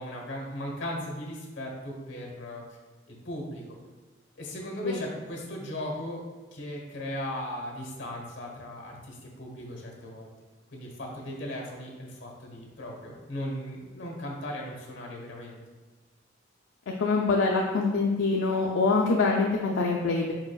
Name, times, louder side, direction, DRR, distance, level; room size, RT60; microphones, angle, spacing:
voice 1, 0.0-2.6 3.1-3.6 4.4-6.2 6.5-10.3 10.7-15.6, left 1 dB, 60° left, 0 dB, 1.2 m, -37 dB
voice 2, 17.0-20.3, left 3 dB, 80° left, -1 dB, 0.4 m, -24 dB
4.8 x 4.7 x 2.3 m, 1.2 s
head